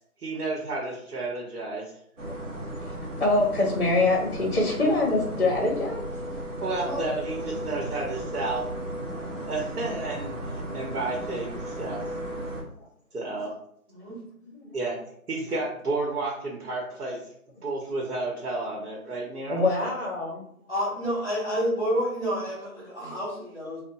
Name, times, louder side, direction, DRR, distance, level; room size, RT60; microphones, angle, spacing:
voice 1, 0.2-1.9 6.6-8.7 9.5-12.1 13.1-13.5 14.7-15.0 15.3-17.3 17.6-19.6, right 2 dB, 85° right, -2 dB, 0.9 m, -31 dB
sound 1, 2.2-12.6, right 1 dB, 55° right, 0.7 m, -35 dB
voice 2, 2.3-6.0 9.8-9.9 12.5-12.9 14.4-14.8 19.5-20.4, left 2 dB, 50° left, 0 dB, 0.6 m, -25 dB
voice 3, 13.9-14.2 20.7-23.8, equal, 15° left, -8 dB, 1.4 m, -29 dB
2.8 x 2.0 x 2.6 m, 0.67 s
figure-of-eight pair, 180°, 44 cm